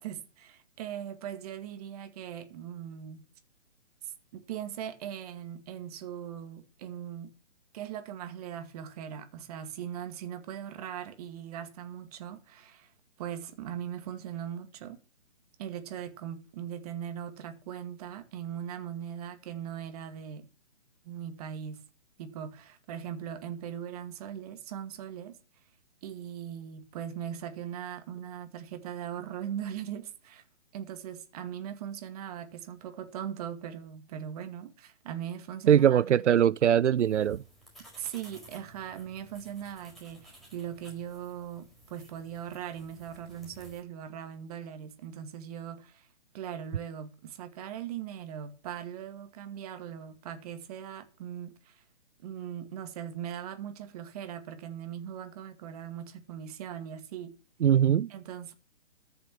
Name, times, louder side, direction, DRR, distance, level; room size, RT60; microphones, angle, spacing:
voice 1, 0.0-3.2 4.0-7.3 7.7-12.9 13.2-15.0 15.6-20.5 21.0-21.8 22.2-25.3 26.0-30.4 30.7-36.2 38.0-46.1 46.3-51.8 52.2-57.4 58.1-58.5, right 9 dB, 35° right, 2.1 m, -40 dB
voice 2, 35.7-37.4 57.6-58.1, right 9 dB, 90° right, 0.5 m, -22 dB
sound 1, 37.0-43.8, right 1 dB, ahead, 4.8 m, -55 dB
14.0 x 7.0 x 7.1 m
hypercardioid pair, 150°, 34 cm